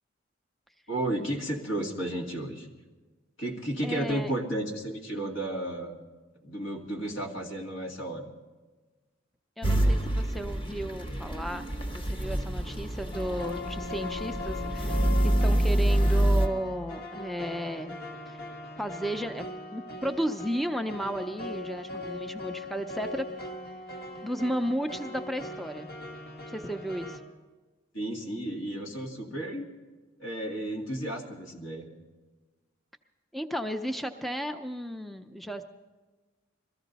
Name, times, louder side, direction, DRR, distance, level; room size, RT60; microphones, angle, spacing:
voice 1, 0.9-2.7 3.4-6.0 6.4-8.3 27.9-29.7 30.2-31.9, right 1 dB, 85° left, 0 dB, 2.3 m, -33 dB
voice 2, 3.8-4.3 9.6-11.7 12.1-18.0 18.3-18.4 18.8-23.3 24.2-25.9 26.5-27.2 33.3-35.6, equal, ahead, 7 dB, 0.4 m, -34 dB
sound 1, 9.6-16.5, right 1 dB, 25° left, 0.9 m, -27 dB
sound 2, 13.1-27.2, left 2 dB, 55° left, 1.6 m, -40 dB
22.0 x 14.5 x 4.0 m, 1.3 s
head